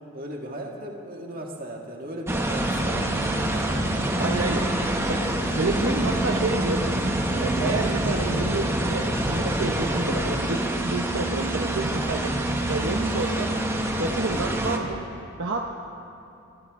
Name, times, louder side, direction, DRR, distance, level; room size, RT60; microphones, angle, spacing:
voice 1, 0.1-4.3, right 1 dB, 45° right, 0 dB, 1.7 m, -37 dB
sound 1, 2.3-14.8, right 1 dB, 10° right, 1.0 m, -26 dB
voice 2, 4.2-6.9 7.3-12.4 12.7-15.0 15.4-15.6, right 2 dB, 65° right, 1 dB, 0.8 m, -29 dB
27.0 x 11.0 x 3.6 m, 2.8 s
head